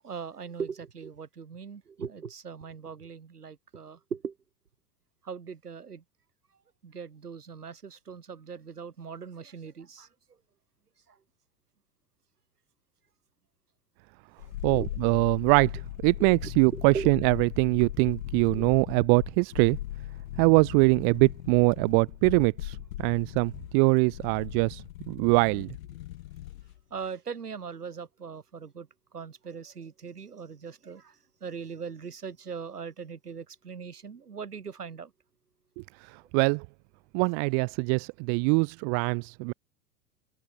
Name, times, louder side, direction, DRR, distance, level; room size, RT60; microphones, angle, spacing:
voice 1, 0.0-4.3 5.2-6.0 6.8-10.1 14.7-14.9 16.2-16.4 16.7-17.1 18.5-18.6 26.9-28.9 29.1-31.1 31.4-35.1, right 6 dB, 85° right, 3.0 m, -40 dB
sound 1, 14.4-26.8 27.0-27.1, left 14 dB, 65° left, 1.2 m, -39 dB
voice 2, 14.6-15.7 16.0-19.8 20.4-25.7 36.3-36.6 37.1-39.5, right 40 dB or more, 45° right, 1.1 m, -23 dB
open air
hypercardioid pair, 95°, 45 cm